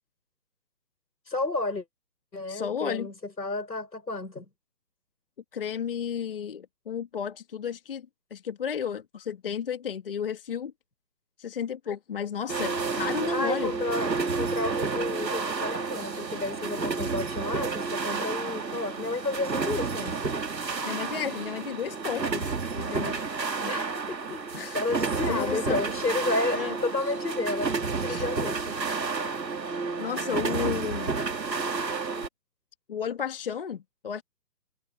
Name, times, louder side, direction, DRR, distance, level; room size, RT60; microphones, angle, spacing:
voice 1, 1.3-1.8 2.3-4.5 13.3-20.2 23.6-27.7 28.0-28.8 29.2-29.5, left 3 dB, 90° left, 6.0 m, -32 dB
voice 2, 2.5-3.1 5.5-8.0 8.3-10.7 11.4-13.7 20.8-23.2 24.5-24.8 25.3-25.8 26.5-26.8 28.1-28.3 30.0-31.3 32.9-34.2, left 8 dB, 35° left, 1.6 m, -33 dB
sound 1, 12.5-32.3, right 4 dB, 85° right, 2.2 m, -30 dB
figure-of-eight pair, 160°, 49 cm